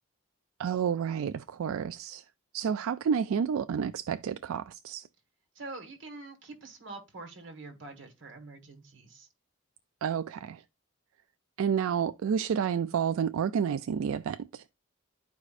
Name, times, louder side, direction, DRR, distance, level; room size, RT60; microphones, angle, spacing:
voice 1, 0.6-2.2 2.5-5.1 10.0-10.6 11.6-14.6, right 7 dB, 80° right, 0.3 m, -30 dB
voice 2, 5.6-9.3, right 3 dB, 55° right, 1.7 m, -45 dB
11.5 x 4.8 x 2.5 m
head